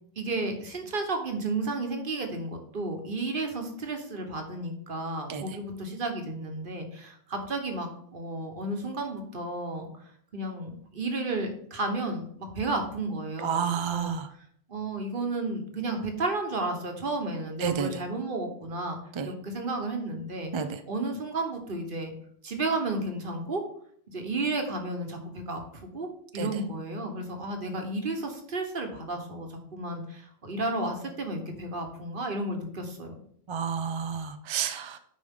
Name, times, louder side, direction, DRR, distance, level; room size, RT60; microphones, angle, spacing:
voice 1, 0.2-10.0 10.3-14.2 14.7-19.0 19.2-20.5 20.9-22.1 22.4-23.6 24.1-26.1 26.3-33.1, right 2 dB, 55° right, 4 dB, 1.4 m, -32 dB
voice 2, 13.4-14.3 17.6-17.9 19.2-19.3 20.5-20.8 26.3-26.5 33.5-35.0, right 7 dB, 40° right, 9 dB, 0.4 m, -30 dB
9.5 x 5.2 x 3.7 m, 0.65 s
omnidirectional pair, 1.1 m